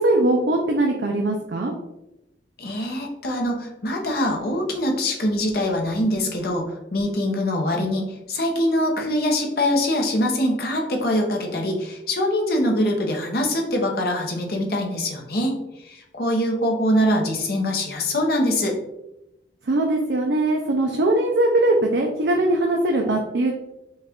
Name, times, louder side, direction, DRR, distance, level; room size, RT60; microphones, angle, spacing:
voice 1, 0.0-1.7 19.7-23.5, right 2 dB, 70° right, 1 dB, 0.5 m, -21 dB
voice 2, 2.6-18.8, left 1 dB, 55° left, 1 dB, 0.9 m, -23 dB
5.4 x 2.4 x 3.5 m, 0.89 s
head